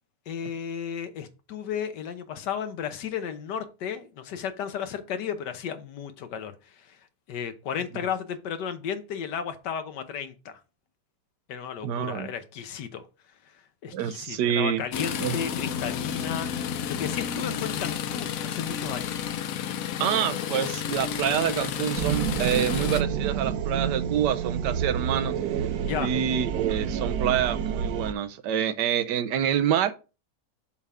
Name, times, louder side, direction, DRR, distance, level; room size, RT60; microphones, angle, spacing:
voice 1, 0.3-7.0 7.3-10.6 11.5-13.0 13.8-19.2 25.9-26.1, left 8 dB, 85° left, 1.5 m, -34 dB
voice 2, 11.8-12.3 13.9-14.8 15.2-15.4 20.0-25.4 26.0-29.9, right 9 dB, 90° right, 1.3 m, -27 dB
sound 1, 14.9-23.0, left 8 dB, 65° left, 0.9 m, -31 dB
sound 2, 22.0-28.1, right 8 dB, 75° right, 1.1 m, -29 dB
7.1 x 3.5 x 5.5 m
omnidirectional pair, 1.8 m